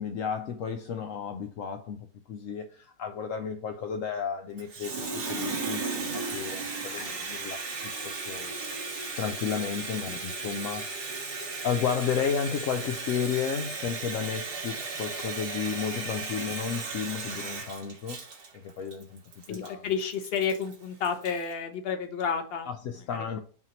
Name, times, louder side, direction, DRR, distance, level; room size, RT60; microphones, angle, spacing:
voice 1, 0.0-2.0 2.3-7.7 8.3-8.5 9.2-10.8 11.6-18.2 18.6-19.2 19.5-19.9 22.7-23.4, left 7 dB, 70° left, 0.7 m, -32 dB
Water tap faucet, 4.6-21.5, right 3 dB, 70° right, 1.9 m, -36 dB
voice 2, 19.5-22.7 23.2-23.4, left 6 dB, 45° left, 0.9 m, -31 dB
5.7 x 3.0 x 5.5 m
omnidirectional pair, 1.9 m